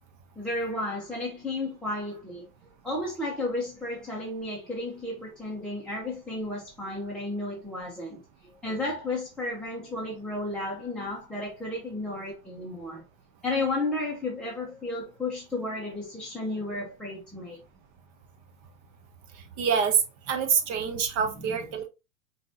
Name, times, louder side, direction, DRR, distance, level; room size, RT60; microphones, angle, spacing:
voice 1, 0.4-2.5 2.8-8.2 8.6-13.0 13.4-17.6, left 2 dB, ahead, 0.8 m, -33 dB
voice 2, 19.6-20.0 20.3-21.9, right 7 dB, 20° right, 0.3 m, -26 dB
5.7 x 2.6 x 2.7 m
hypercardioid pair, 140°, 41 cm